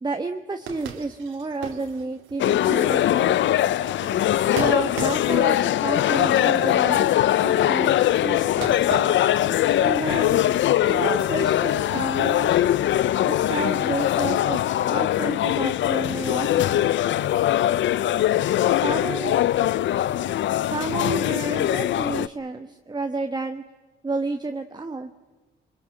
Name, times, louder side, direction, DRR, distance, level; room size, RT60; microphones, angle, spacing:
voice 1, 0.0-3.7 4.5-9.0 9.8-10.4 10.8-12.7 13.2-16.9 18.8-19.4 20.7-23.6 24.0-25.1, right 3 dB, 20° right, 6 dB, 1.3 m, -31 dB
sound 1, 0.6-7.7 8.5-10.5 10.7-12.3, right 7 dB, 80° right, 2.8 m, -38 dB
sound 2, 2.4-22.3, left 12 dB, 70° left, 0.7 m, -21 dB
23.0 x 23.0 x 7.7 m, 1.2 s
cardioid pair, 90°, 20 cm